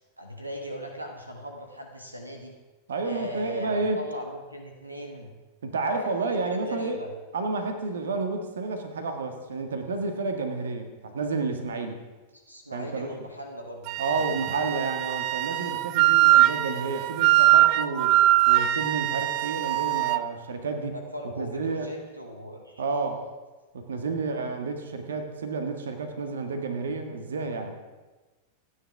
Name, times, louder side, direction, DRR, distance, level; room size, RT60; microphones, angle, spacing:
voice 1, 0.2-2.5 3.0-5.3 5.8-7.1 12.3-14.3 20.9-22.8, equal, 85° right, 3 dB, 1.6 m, -38 dB
voice 2, 2.9-4.1 5.6-7.0 7.3-12.0 12.7-13.2 14.0-18.2 18.5-21.0 21.4-21.9 22.8-23.2 23.7-27.7, right 3 dB, 65° right, 6 dB, 1.7 m, -30 dB
Wind instrument woodwind instrument, 13.9-20.2, right 16 dB, 45° right, 0.5 m, -22 dB
28.5 x 9.9 x 3.6 m, 1.2 s
figure-of-eight pair, 90°, 0 cm